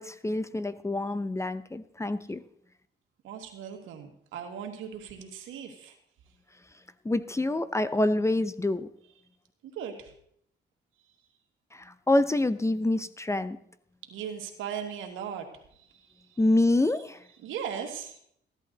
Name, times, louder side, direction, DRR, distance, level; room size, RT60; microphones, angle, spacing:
voice 1, 0.0-2.4 7.0-8.9 11.7-13.6 16.4-17.2, left 2 dB, 15° left, 13 dB, 0.6 m, -26 dB
voice 2, 3.2-6.0 9.6-10.1 14.1-16.4 17.4-18.2, right 8 dB, 90° right, 3 dB, 2.2 m, -38 dB
15.0 x 11.5 x 4.0 m, 0.66 s
cardioid pair, 90°, 20 cm